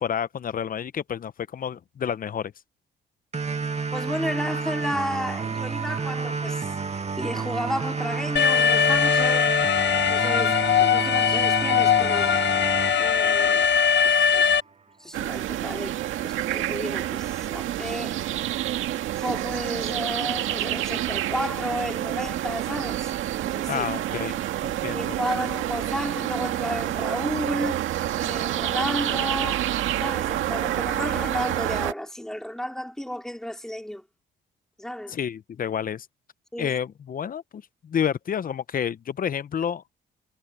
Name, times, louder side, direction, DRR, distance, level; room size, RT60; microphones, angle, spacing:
voice 1, 0.0-2.5 23.7-25.2 35.1-36.1 36.6-39.8, left 8 dB, 45° left, 0.8 m, -29 dB
sound 1, 3.3-14.3, right 5 dB, 35° right, 2.2 m, -30 dB
voice 2, 3.9-6.7 7.2-9.5 10.1-12.3 13.0-13.7 14.0-14.5 15.0-18.2 19.2-23.1 23.4-23.9 24.9-27.8 28.1-29.7 30.0-34.0 34.8-35.2 36.5-36.8, equal, 5° left, 2.7 m, -32 dB
Alarm, 8.4-14.6, left 8 dB, 65° left, 1.2 m, -21 dB
sound 2, 15.1-31.9, right 13 dB, 85° right, 1.9 m, -28 dB
cardioid pair, 90°, 20 cm